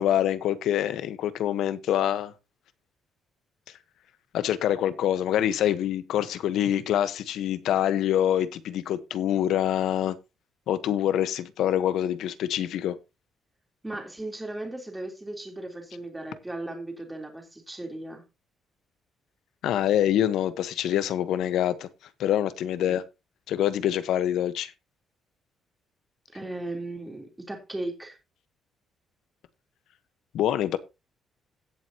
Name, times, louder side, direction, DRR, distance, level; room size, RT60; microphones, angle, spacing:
voice 1, 0.0-2.3 4.3-10.2 10.7-13.0 19.6-21.9 22.2-23.0 23.5-24.7 30.3-30.8, left 11 dB, 80° left, 1.1 m, -25 dB
voice 2, 13.8-18.2 22.8-23.0 26.3-28.2, right 2 dB, 10° right, 3.5 m, -36 dB
16.5 x 7.6 x 2.9 m
cardioid pair, 135°, 0 cm